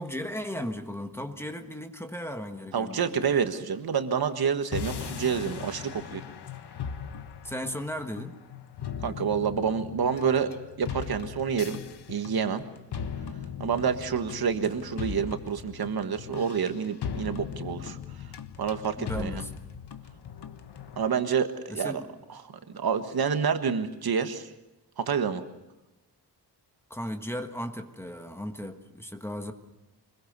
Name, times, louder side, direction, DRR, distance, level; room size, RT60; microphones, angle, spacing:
voice 1, 0.0-3.2 7.4-8.4 19.0-19.6 21.7-22.1 26.9-29.5, equal, 5° left, 6 dB, 1.4 m, -36 dB
voice 2, 2.7-6.2 9.0-11.8 12.1-12.6 13.6-18.0 18.6-19.4 21.0-22.0 22.7-24.5 25.0-25.4, right 6 dB, 65° right, 8 dB, 1.6 m, -28 dB
sound 1, 4.7-21.1, left 7 dB, 75° left, 1.4 m, -39 dB
25.0 x 22.0 x 6.7 m, 0.97 s
wide cardioid pair, 170°, 41 cm